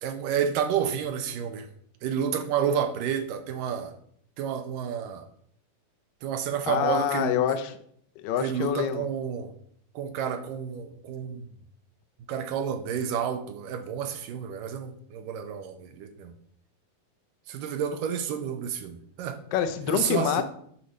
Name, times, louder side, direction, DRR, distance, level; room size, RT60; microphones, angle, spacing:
voice 1, 0.0-1.7 2.0-3.9 4.4-5.3 6.2-7.3 8.4-9.5 10.0-11.5 12.3-16.3 17.5-19.4 19.9-20.4, right 8 dB, 75° right, 8 dB, 2.2 m, -30 dB
voice 2, 6.7-7.7 8.2-9.1 19.5-20.4, left 9 dB, 75° left, 8 dB, 2.3 m, -26 dB
10.5 x 4.1 x 6.5 m, 0.66 s
omnidirectional pair, 4.4 m